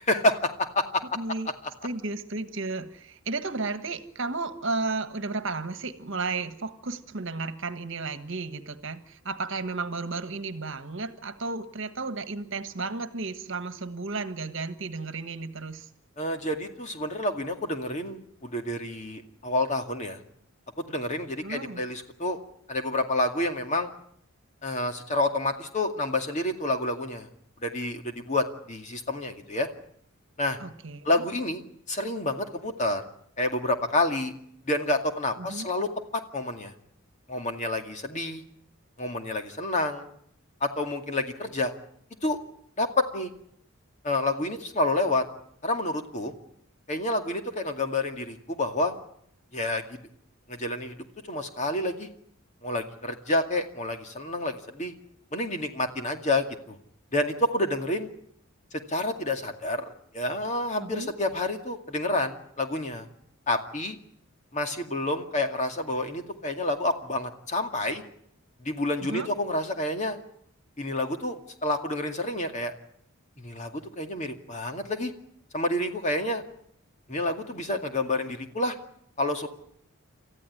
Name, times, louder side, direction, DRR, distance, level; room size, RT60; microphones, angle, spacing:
voice 1, 0.0-1.0 16.2-20.2 20.9-22.4 22.7-23.9 24.6-27.3 27.6-29.7 30.4-30.6 31.0-31.6 31.9-33.0 33.4-34.3 34.6-36.7 37.3-38.4 39.0-40.1 40.6-41.7 42.2-42.4 42.8-43.3 44.0-45.2 45.6-46.3 46.9-48.9 49.5-50.0 50.5-51.0 51.3-52.1 52.6-54.9 55.3-56.8 57.1-58.1 58.7-63.1 63.5-64.0 64.5-68.0 68.6-70.2 70.8-72.7 73.4-75.1 75.5-76.4 77.1-78.8 79.2-79.5, left 2 dB, 35° left, 5 dB, 2.2 m, -29 dB
voice 2, 1.1-1.5 1.8-15.9 21.4-21.8 30.6-31.1 35.4-35.7 60.8-61.1 69.0-69.3, right 3 dB, 60° right, 11 dB, 1.5 m, -33 dB
29.0 x 14.0 x 9.9 m, 0.70 s
head